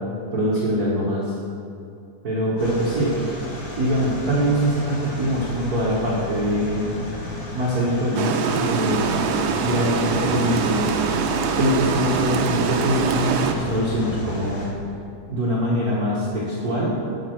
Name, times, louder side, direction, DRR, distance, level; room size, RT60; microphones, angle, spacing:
voice 1, 0.3-1.4 2.2-3.1 3.7-6.9 7.5-10.9 11.5-14.6 15.3-16.9, equal, 55° right, -6 dB, 1.0 m, -23 dB
sound 1, 2.6-14.7, left 2 dB, 80° left, 3.5 m, -34 dB
Water, 8.2-13.5, right 6 dB, 85° right, 1.4 m, -24 dB
8.9 x 8.5 x 4.5 m, 2.6 s
omnidirectional pair, 3.6 m